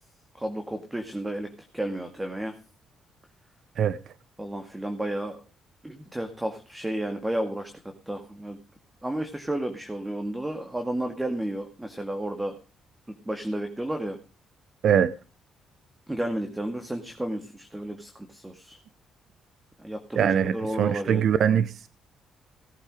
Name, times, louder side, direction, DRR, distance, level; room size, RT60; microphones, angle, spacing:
voice 1, 0.3-2.5 4.4-5.4 5.8-7.7 8.1-8.6 9.0-12.6 13.1-14.2 16.1-18.8 19.8-21.3, right 1 dB, 10° right, 2.0 m, -32 dB
voice 2, 20.2-21.9, right 8 dB, 65° right, 0.8 m, -22 dB
18.0 x 8.4 x 4.9 m
cardioid pair, 90°, 0 cm